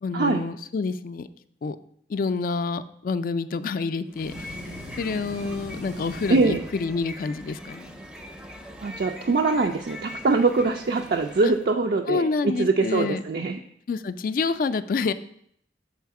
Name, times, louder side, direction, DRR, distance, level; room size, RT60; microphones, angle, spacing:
voice 1, 0.0-1.3 1.6-1.8 2.1-4.6 5.0-8.0 11.4-11.5 12.1-13.2 13.9-15.1, left 4 dB, 50° left, 13 dB, 0.3 m, -28 dB
sound 1, 4.1-11.7, left 1 dB, 5° right, 0.5 m, -42 dB
sound 2, 4.1-7.3, equal, 90° right, 1.4 m, -41 dB
voice 2, 6.3-6.6 8.8-12.3 12.6-13.6, right 3 dB, 60° right, 3 dB, 0.4 m, -23 dB
7.2 x 4.1 x 4.7 m, 0.69 s
head